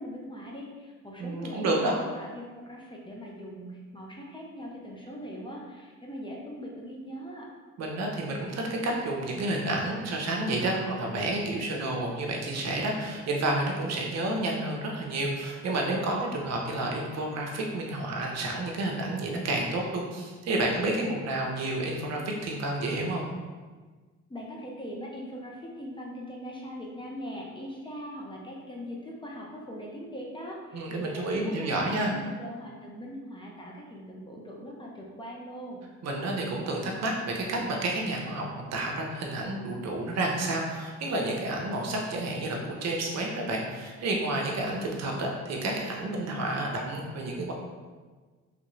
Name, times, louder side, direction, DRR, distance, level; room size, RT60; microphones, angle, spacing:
voice 1, 0.0-7.5 24.3-35.8, equal, 15° left, -2 dB, 0.6 m, -41 dB
voice 2, 1.2-2.0 7.8-23.2 30.7-32.1 36.0-47.5, right 2 dB, 60° right, 0 dB, 0.7 m, -30 dB
3.3 x 2.5 x 3.0 m, 1.4 s
cardioid pair, 90°, 30 cm